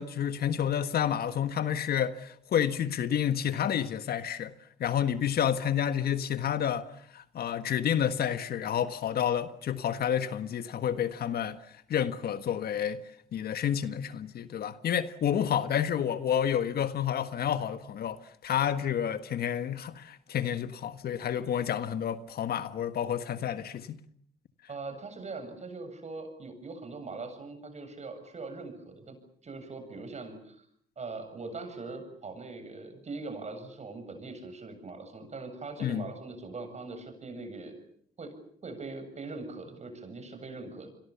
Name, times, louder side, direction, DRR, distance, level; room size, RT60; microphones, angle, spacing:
voice 1, 0.0-4.5 4.8-6.9 7.1-11.6 11.9-13.0 13.3-24.0 35.8-36.1, left 9 dB, 65° left, 1.5 m, -29 dB
voice 2, 24.7-29.2 29.4-30.6 31.0-37.8 38.2-38.3 38.6-40.9, right 3 dB, 40° right, 7.7 m, -41 dB
28.5 x 23.0 x 7.1 m
cardioid pair, 80°, 17 cm